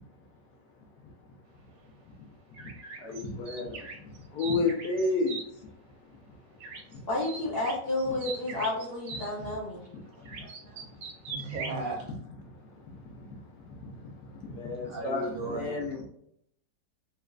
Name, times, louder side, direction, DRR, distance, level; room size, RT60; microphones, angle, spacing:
sound 1, 2.5-5.4 6.6-7.0 7.2-9.3 10.3-11.8, right 4 dB, 85° right, 1.4 m, -41 dB
voice 1, 3.0-3.7 4.4-5.4 14.6-16.0, left 3 dB, 70° left, 0 dB, 1.3 m, -30 dB
voice 2, 7.1-9.8, left 2 dB, 45° left, -5 dB, 0.8 m, -31 dB
voice 3, 10.1-10.8 11.3-12.0 14.8-15.7, right 2 dB, 65° right, 0 dB, 1.0 m, -36 dB
4.2 x 2.4 x 2.3 m, 0.71 s
omnidirectional pair, 1.9 m